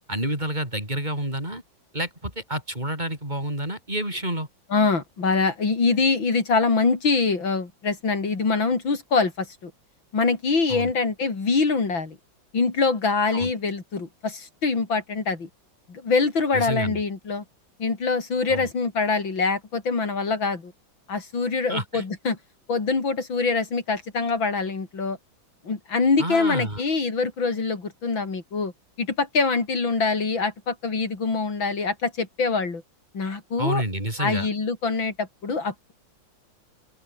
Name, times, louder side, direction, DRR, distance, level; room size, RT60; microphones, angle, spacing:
voice 1, 0.1-1.6 1.9-4.5 10.7-10.9 13.3-13.5 16.5-17.0 18.5-18.7 21.7-22.0 26.2-26.8 33.6-34.5, right 1 dB, 20° right, 6.8 m, -29 dB
voice 2, 4.7-9.7 10.1-12.2 12.5-15.5 15.9-17.4 17.8-20.7 21.1-22.4 22.7-25.2 25.6-28.7 29.0-32.8 33.1-33.8 34.2-35.9, left 4 dB, 85° left, 4.5 m, -24 dB
open air
omnidirectional pair, 2.1 m